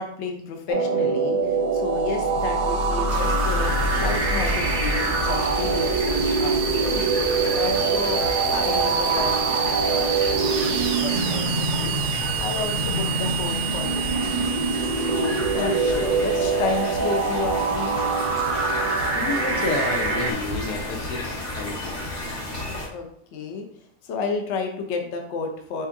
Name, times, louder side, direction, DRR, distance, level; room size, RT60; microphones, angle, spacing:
voice 1, 0.0-7.1 7.4-8.2 8.5-11.9 12.4-14.6 15.0-18.0 22.9-23.7 24.0-25.9, left 4 dB, 60° left, 3 dB, 0.9 m, -32 dB
sound 1, 0.7-20.3, right 4 dB, 85° right, 1.5 m, -25 dB
sound 2, 1.6-17.9, right 4 dB, 65° right, 0.8 m, -29 dB
sound 3, 3.1-22.9, left 1 dB, 35° left, 0.9 m, -32 dB
voice 2, 15.5-16.2 19.1-22.0, left 3 dB, 75° left, 4 dB, 1.1 m, -30 dB
5.4 x 3.5 x 2.6 m, 0.66 s
omnidirectional pair, 1.6 m